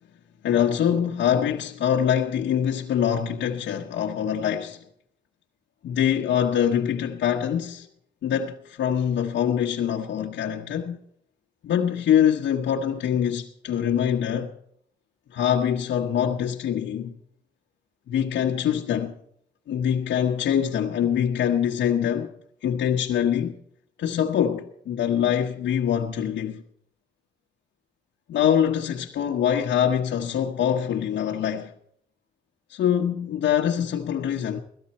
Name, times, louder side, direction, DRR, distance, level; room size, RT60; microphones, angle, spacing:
voice 1, 0.4-4.8 5.8-7.9 8.2-11.0 11.6-14.5 15.3-17.2 18.1-19.1 19.7-22.3 22.6-23.5 24.0-26.6 28.3-31.7 32.7-34.6, left 9 dB, 65° left, 1.1 m, -24 dB
17.0 x 14.0 x 4.3 m
cardioid pair, 90°, 20 cm